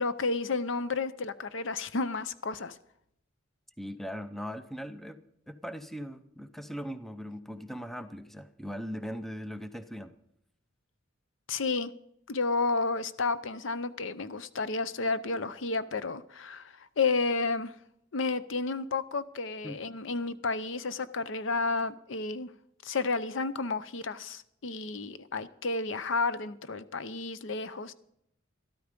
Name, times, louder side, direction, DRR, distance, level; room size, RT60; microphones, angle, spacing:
voice 1, 0.0-2.8 11.5-11.9 12.3-17.7 18.1-22.5 22.8-27.9, left 3 dB, 65° left, 15 dB, 0.7 m, -31 dB
voice 2, 3.8-10.1 19.6-19.8, equal, ahead, 11 dB, 0.6 m, -40 dB
13.0 x 12.5 x 5.2 m, 0.76 s
head